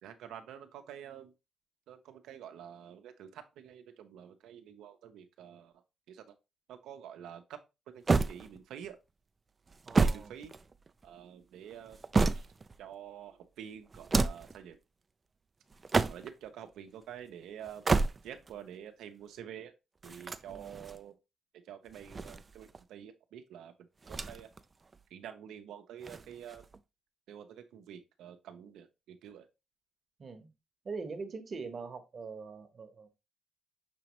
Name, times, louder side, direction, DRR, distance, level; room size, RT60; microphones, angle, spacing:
voice 1, 0.0-1.3 1.9-5.7 6.1-6.3 6.7-7.6 7.9-9.0 10.0-10.5 11.0-12.0 12.3-12.5 12.8-14.8 16.1-17.9 18.2-19.7 20.0-21.2 21.6-24.5 25.1-26.6 27.3-29.5, right 9 dB, 85° right, 0.6 m, -48 dB
sound 1, 8.1-8.9 9.7-11.1 11.7-12.8 13.9-14.6 15.7-16.5 17.6-18.5 20.0-21.0 21.9-22.8 24.0-24.6 24.9-25.0 26.0-26.8, right 3 dB, 30° right, 0.3 m, -31 dB
voice 2, 9.8-10.3 20.5-20.8 30.2-30.5 30.8-33.1, right 4 dB, 45° right, 0.9 m, -42 dB
6.1 x 3.0 x 2.9 m
cardioid pair, 90°, 0 cm